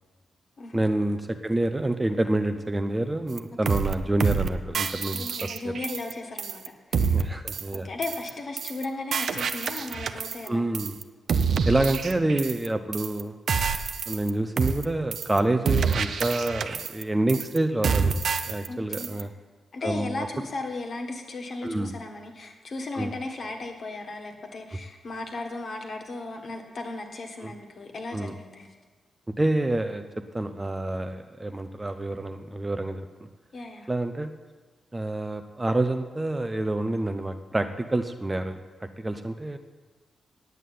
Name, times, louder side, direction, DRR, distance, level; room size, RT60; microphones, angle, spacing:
voice 1, 0.7-5.5 7.1-7.9 10.5-11.0 11.7-13.4 14.1-18.1 18.5-19.3 19.8-20.3 21.6-21.9 22.9-23.1 27.4-27.5 28.1-28.3 29.4-30.0 30.3-33.0 33.9-34.3 34.9-39.6, right 2 dB, 15° right, 8 dB, 0.5 m, -27 dB
sound 1, 3.4-3.5 3.7-3.9 4.2-4.5 4.7-6.1 6.4-6.7 6.9-7.2 7.5-7.8 8.0-8.3 8.6-8.8 9.1-10.5 10.7-11.0 11.3-12.7 12.9-13.2 13.5-14.3 14.6-14.8 15.1-15.4 15.7-17.0 17.3-17.6 17.8-18.7 18.9-19.2, right 6 dB, 55° right, 0.6 m, -27 dB
voice 2, 5.1-7.2 7.7-10.6 18.7-19.3 19.7-28.7 33.5-33.9, left 2 dB, 45° left, 4 dB, 1.6 m, -36 dB
9.2 x 8.4 x 9.4 m, 1.3 s
wide cardioid pair, 160°, 0 cm